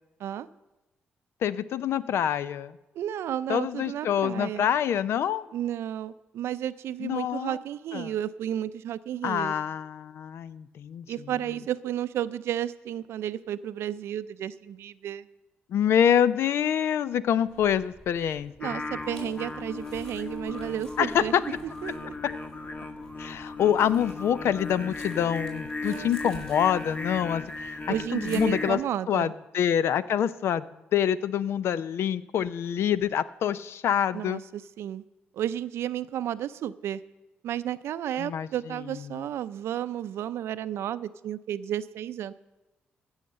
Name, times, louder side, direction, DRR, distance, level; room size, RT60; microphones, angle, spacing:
voice 1, 1.4-2.8 3.5-5.4 7.0-7.6 7.9-8.1 9.2-11.0 15.7-18.7 21.0-21.4 23.2-27.8 28.1-28.8 29.1-34.4 38.2-38.5 39.1-39.2, left 9 dB, 70° left, 16 dB, 0.5 m, -26 dB
voice 2, 2.9-4.7 5.5-9.5 11.1-15.3 18.6-21.3 21.8-22.1 25.8-26.4 27.9-29.3 34.1-35.0 35.3-37.0 37.4-42.3, right 11 dB, 75° right, 14 dB, 0.5 m, -32 dB
sound 1, 17.4-28.8, left 1 dB, 20° left, 5.0 m, -52 dB
Singing, 18.6-28.7, left 3 dB, 40° left, 1.4 m, -36 dB
15.5 x 6.5 x 6.6 m, 1.0 s
supercardioid pair, 65°, 4 cm